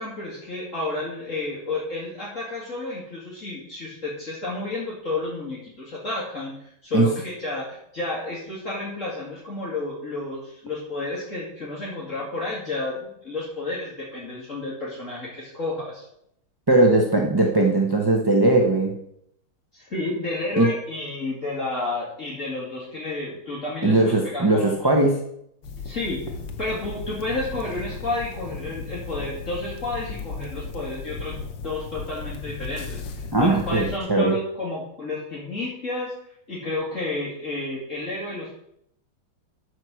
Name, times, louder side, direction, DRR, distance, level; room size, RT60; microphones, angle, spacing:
voice 1, 0.0-16.0 19.7-24.9 25.8-26.3 26.6-36.1 36.5-38.5, left 2 dB, 40° left, -7 dB, 2.9 m, -31 dB
voice 2, 16.7-19.0 20.6-20.7 23.8-25.2 33.3-34.3, right 2 dB, 20° right, 1 dB, 0.7 m, -19 dB
sound 1, 25.6-34.0, left 4 dB, 75° left, 1.8 m, -36 dB
13.0 x 4.8 x 6.2 m, 0.73 s
omnidirectional pair, 2.1 m